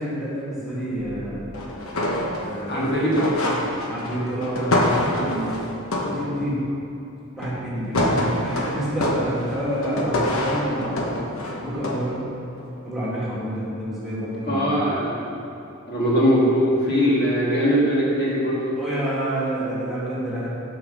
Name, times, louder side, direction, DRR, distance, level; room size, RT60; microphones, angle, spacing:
voice 1, 0.0-1.4 2.4-5.6 6.0-6.6 7.4-11.3 11.6-12.2 12.8-14.8 18.8-20.5, right 1 dB, ahead, -9 dB, 2.2 m, -28 dB
sound 1, 1.0-2.9 3.1-6.5 7.4-7.7 7.9-12.2 12.6-12.8, left 1 dB, 65° left, 1.1 m, -26 dB
voice 2, 2.7-3.6 14.4-15.4 15.9-18.7, equal, 45° left, -6 dB, 1.7 m, -21 dB
8.1 x 5.8 x 6.4 m, 2.8 s
head